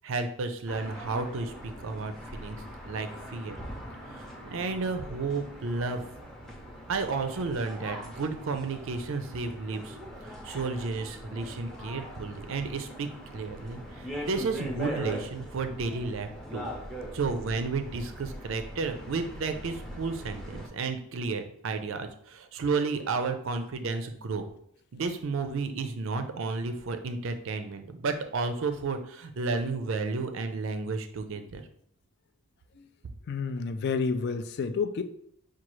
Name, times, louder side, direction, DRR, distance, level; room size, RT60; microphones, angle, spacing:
voice 1, 0.0-3.6 4.1-6.0 6.9-10.0 10.2-16.7 17.1-24.5 24.9-31.6, right 4 dB, 60° right, 8 dB, 0.4 m, -32 dB
sound 1, 0.7-20.7, equal, 5° left, 0.6 m, -41 dB
voice 2, 33.3-35.0, left 5 dB, 50° left, 10 dB, 0.3 m, -30 dB
5.8 x 2.3 x 3.1 m, 0.68 s
head